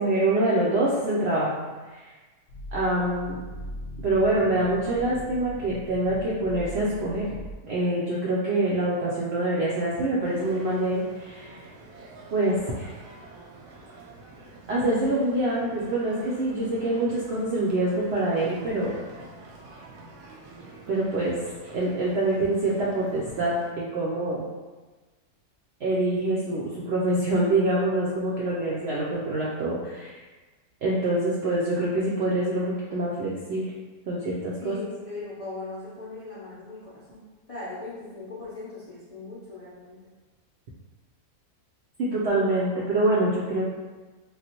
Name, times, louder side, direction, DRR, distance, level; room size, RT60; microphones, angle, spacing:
voice 1, 0.0-2.2 2.7-3.4 4.0-7.3 7.6-11.6 12.3-12.9 14.7-19.0 20.9-21.4 21.7-24.4 25.8-30.2 30.8-33.7 34.1-34.8 42.0-43.7, right 1 dB, 75° right, -6 dB, 0.6 m, -25 dB
sound 1, 2.5-7.5, left 1 dB, 90° left, 1.1 m, -40 dB
sound 2, 10.2-23.7, right 2 dB, 90° right, 1.1 m, -47 dB
voice 2, 34.6-37.2 37.5-40.0, left 2 dB, 55° left, -9 dB, 0.3 m, -39 dB
3.2 x 2.4 x 2.8 m, 1.3 s
omnidirectional pair, 1.6 m